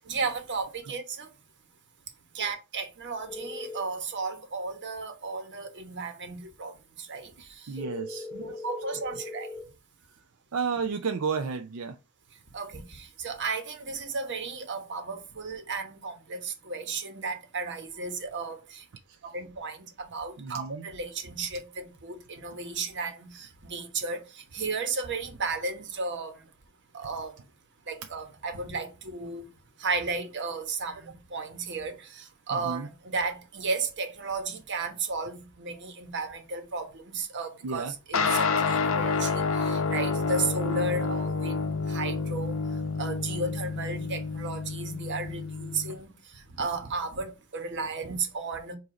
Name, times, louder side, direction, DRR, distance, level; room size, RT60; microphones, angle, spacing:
voice 1, 0.1-1.3 2.3-7.7 8.3-9.5 12.5-18.8 19.2-26.4 26.9-27.4 27.9-29.5 29.8-42.6 43.0-48.8, right 4 dB, 60° right, 1.2 m, -34 dB
sound 1, 3.3-3.8 7.8-9.6, left 3 dB, 10° left, 1.4 m, -39 dB
voice 2, 7.7-8.5 10.5-12.0 20.4-20.9 32.6-32.9 37.6-37.9, right 5 dB, 90° right, 0.5 m, -32 dB
sound 2, 38.1-45.9, left 4 dB, 70° left, 0.8 m, -29 dB
7.6 x 2.7 x 4.9 m
head